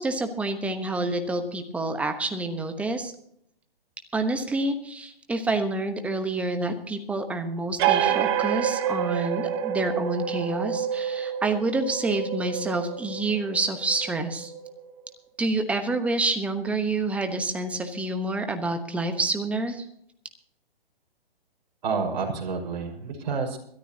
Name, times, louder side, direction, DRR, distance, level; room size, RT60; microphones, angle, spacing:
voice 1, 0.0-3.1 4.1-14.5 15.4-19.9, right 2 dB, 5° right, 7 dB, 1.1 m, -28 dB
sound 1, 7.8-15.0, right 9 dB, 25° right, 0.9 m, -28 dB
voice 2, 21.8-23.6, right 5 dB, 50° right, 1 dB, 5.4 m, -29 dB
22.5 x 13.5 x 2.9 m, 0.70 s
hypercardioid pair, 145°, 30 cm